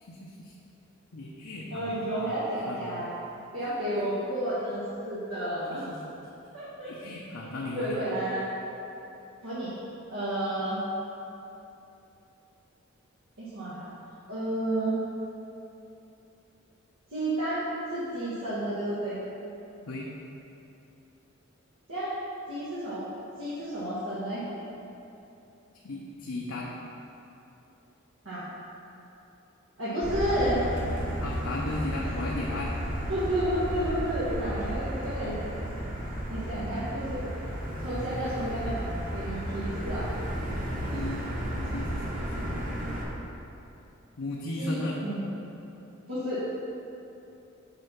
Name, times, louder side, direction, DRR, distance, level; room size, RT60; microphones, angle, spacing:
voice 1, 0.1-0.5 1.1-2.3 2.7-2.9 3.9-4.0 5.7-6.0 6.8-8.0 19.9-20.1 25.8-26.7 31.2-32.7 40.9-41.3 41.7-42.7 44.2-45.0, left 2 dB, 80° left, -3 dB, 0.7 m, -36 dB
voice 2, 1.7-3.1 3.5-5.8 6.5-6.9 7.7-8.5 9.4-9.7 10.1-10.8 13.4-13.9 14.3-15.0 17.1-19.2 21.9-22.2 22.5-23.0 23.4-24.4 28.2-28.5 29.8-30.6 32.0-32.1 33.1-35.4 36.3-37.2 37.8-38.8 39.1-40.1 44.6-45.3 46.1-46.5, right 1 dB, 85° right, -12 dB, 1.7 m, -31 dB
Motor vehicle (road), 30.0-43.0, equal, 45° right, 1.5 m, -33 dB
6.8 x 4.2 x 5.8 m, 2.9 s
head